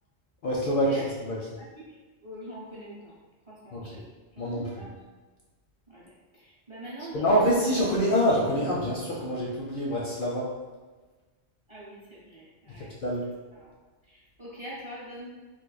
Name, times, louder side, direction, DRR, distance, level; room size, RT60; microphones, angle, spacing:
voice 1, 0.4-0.9 1.2-1.4 3.7-3.8 4.4-4.8 7.1-10.5 12.8-13.3, equal, 60° left, -4 dB, 0.6 m, -26 dB
voice 2, 1.6-2.0 2.2-3.2 3.5-4.0 4.3-4.9 5.9-7.8 11.7-12.9 13.5-13.7 14.0-15.3, equal, 30° right, -8 dB, 0.7 m, -43 dB
2.6 x 2.4 x 3.9 m, 1.3 s
omnidirectional pair, 1.2 m